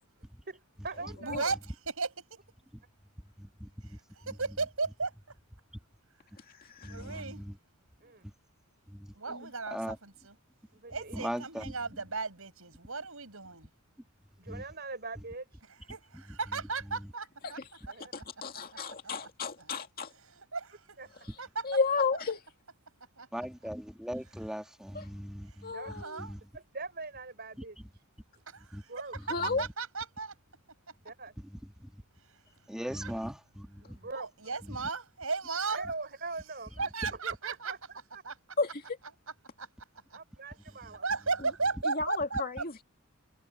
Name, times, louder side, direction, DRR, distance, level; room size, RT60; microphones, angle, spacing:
voice 1, 0.5-1.4 8.0-8.3 9.3-9.4 10.7-11.2 14.4-15.5 17.9-18.1 18.7-18.8 21.0-21.1 25.6-25.9 26.5-27.8 28.9-29.1 31.0-31.3 33.8-34.3 35.7-36.9 37.2-38.2 40.1-41.1, right 3 dB, 45° right, 5.4 m, -42 dB
voice 2, 1.2-2.4 3.9-5.1 6.8-7.4 9.1-10.3 10.9-13.7 15.9-17.6 18.5-18.6 19.0-19.1 19.6-19.7 20.1-21.0 21.4-21.7 23.2-23.3 24.8-24.9 25.5-25.6 25.9-26.3 28.5-30.4 32.8-33.3 34.1-35.9 36.8-37.7 38.2-38.4 39.6-39.7 40.1-40.2 40.9-42.6, right 4 dB, 70° right, 6.4 m, -36 dB
voice 3, 3.4-3.7 6.8-7.5 8.9-9.1 9.7-10.0 11.1-11.7 14.5-14.6 23.3-25.7 26.2-26.4 28.7-28.8 31.8-31.9 32.7-34.0 34.7-34.8, equal, 5° right, 1.6 m, -39 dB
voice 4, 6.6-7.2 9.3-9.5 17.4-17.5 18.1-20.1 21.6-22.4 24.9-25.1 25.6-26.2 29.3-29.6 38.6-38.8 41.8-42.7, left 4 dB, 45° left, 2.3 m, -32 dB
head